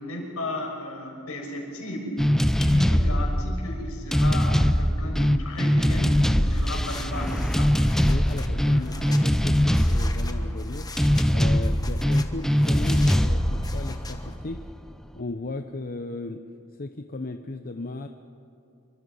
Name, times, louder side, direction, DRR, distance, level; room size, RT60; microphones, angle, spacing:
voice 1, 0.0-2.1 2.6-7.8 8.6-9.3, left 1 dB, 70° left, 0 dB, 6.2 m, -35 dB
sound 1, 2.2-14.9, equal, ahead, 0.6 m, -22 dB
sound 2, 5.8-14.4, left 3 dB, 15° left, 1.4 m, -43 dB
voice 2, 8.0-10.9 11.2-14.6 15.1-16.4 16.8-18.1, left 2 dB, 40° left, 6 dB, 0.8 m, -36 dB
27.5 x 24.0 x 5.6 m, 2.7 s
head